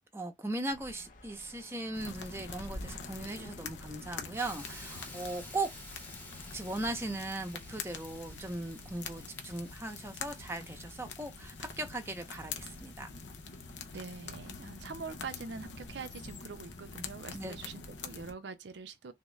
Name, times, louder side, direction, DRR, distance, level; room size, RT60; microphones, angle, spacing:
voice 1, 0.1-5.7 6.5-13.1 17.3-17.6, right 2 dB, 15° right, 0.7 m, -38 dB
sound 1, 0.7-6.6, left 1 dB, 45° left, 0.7 m, -51 dB
sound 2, 1.9-18.3, left 5 dB, 85° left, 0.6 m, -45 dB
Hiss, 4.4-14.3, left 1 dB, 10° left, 0.9 m, -53 dB
voice 2, 13.9-19.1, right 4 dB, 75° right, 0.5 m, -44 dB
3.4 x 2.3 x 3.1 m
head